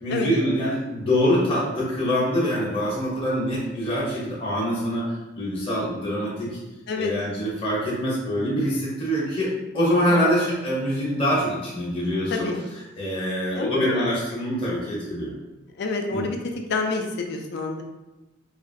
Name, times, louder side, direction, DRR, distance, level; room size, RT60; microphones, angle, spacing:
voice 1, 0.0-6.6 7.0-9.5 9.7-12.5 13.0-15.3 16.1-16.3, equal, 30° left, -7 dB, 0.7 m, -24 dB
voice 2, 10.1-10.5 12.3-12.6 13.6-14.1 15.8-16.4 16.7-17.8, left 3 dB, 55° left, 3 dB, 0.4 m, -27 dB
2.8 x 2.4 x 2.6 m, 1.0 s
head